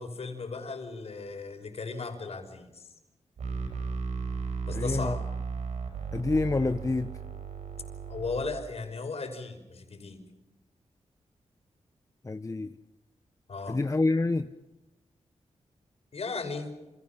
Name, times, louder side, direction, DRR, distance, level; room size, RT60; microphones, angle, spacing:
voice 1, 0.0-2.9 4.7-5.2 8.1-10.2 13.5-13.8 16.1-16.7, left 4 dB, 60° left, 5.4 m, -36 dB
sound 1, 3.4-8.4, right 5 dB, 90° right, 5.6 m, -35 dB
voice 2, 4.7-5.2 6.1-7.2 12.2-12.7 13.7-14.5, left 3 dB, 25° left, 1.0 m, -27 dB
29.0 x 27.0 x 5.9 m
wide cardioid pair, 85°, 12 cm